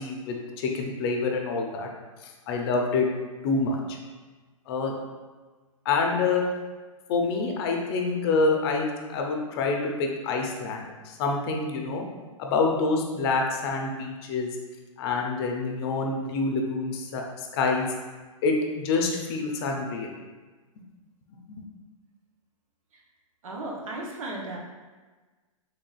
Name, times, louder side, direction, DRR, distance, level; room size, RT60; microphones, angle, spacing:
voice 1, 0.0-1.9 2.2-3.1 3.4-4.0 4.7-4.9 5.8-6.4 7.1-12.0 12.4-14.5 15.0-17.9 18.4-20.1 21.5-21.6, left 3 dB, 45° left, 1 dB, 0.6 m, -27 dB
voice 2, 23.4-24.6, right 2 dB, 70° right, -1 dB, 0.9 m, -35 dB
3.8 x 3.4 x 2.4 m, 1.3 s
hypercardioid pair, 135°, 18 cm